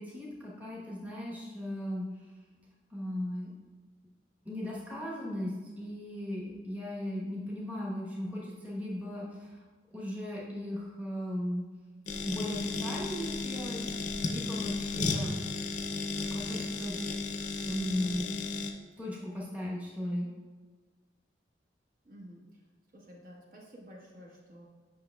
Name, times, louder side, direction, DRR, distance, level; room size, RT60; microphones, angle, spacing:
voice 1, 0.0-2.0 2.9-3.5 4.4-9.6 9.9-11.6 12.3-13.8 14.3-15.3 16.3-16.9 17.7-18.3 19.0-20.3, left 1 dB, 10° right, -6 dB, 1.0 m, -37 dB
sound 1, 12.1-18.7, left 3 dB, 40° left, 0.5 m, -34 dB
voice 2, 22.0-22.6 22.9-24.7, equal, 45° right, -3 dB, 1.1 m, -51 dB
8.5 x 5.8 x 2.3 m, 1.5 s
head